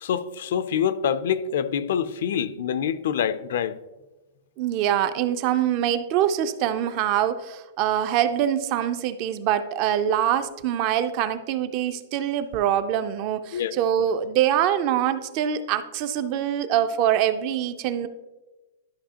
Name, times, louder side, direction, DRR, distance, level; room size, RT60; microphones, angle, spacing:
voice 1, 0.0-3.8 13.5-14.1, left 8 dB, 55° left, 0.4 m, -26 dB
voice 2, 4.6-18.1, right 10 dB, 30° right, 0.4 m, -24 dB
11.5 x 5.5 x 2.8 m
supercardioid pair, 180°, 0 cm